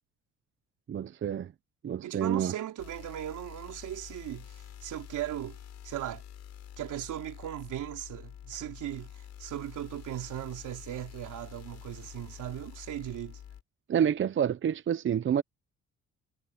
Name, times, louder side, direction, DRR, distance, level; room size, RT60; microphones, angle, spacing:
voice 1, 0.9-1.5 1.8-2.5 13.9-15.4, right 9 dB, 40° right, 0.7 m, -28 dB
voice 2, 2.0-5.6 5.8-6.2 6.8-13.4, right 12 dB, 75° right, 3.1 m, -38 dB
sound 1, 2.8-13.6, left 9 dB, 60° left, 6.5 m, -47 dB
cardioid pair, 105°, 31 cm